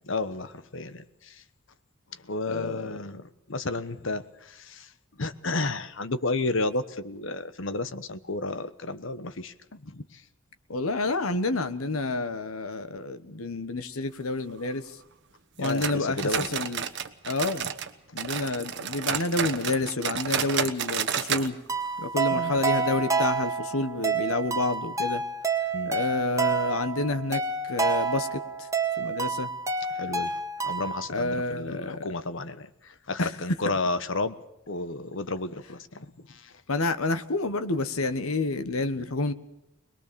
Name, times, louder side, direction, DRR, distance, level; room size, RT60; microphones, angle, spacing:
voice 1, 0.0-1.4 2.2-4.9 5.2-10.2 15.6-16.5 22.3-22.5 25.7-25.9 29.9-34.4 34.7-36.5, left 2 dB, 60° left, 13 dB, 1.1 m, -32 dB
voice 2, 2.5-2.9 10.7-14.9 15.6-16.8 17.3-17.7 18.1-21.5 22.0-25.2 25.8-28.4 29.0-29.5 31.1-32.1 33.2-33.6 36.7-39.3, left 2 dB, 85° left, 11 dB, 1.3 m, -29 dB
sound 1, 15.6-17.9 18.2-21.5 21.8-21.9 22.3-22.4 22.9-23.0, right 7 dB, 55° right, 1.2 m, -30 dB
sound 2, 21.7-31.1, right 4 dB, 15° right, 1.8 m, -28 dB
22.5 x 21.0 x 7.0 m, 0.85 s
head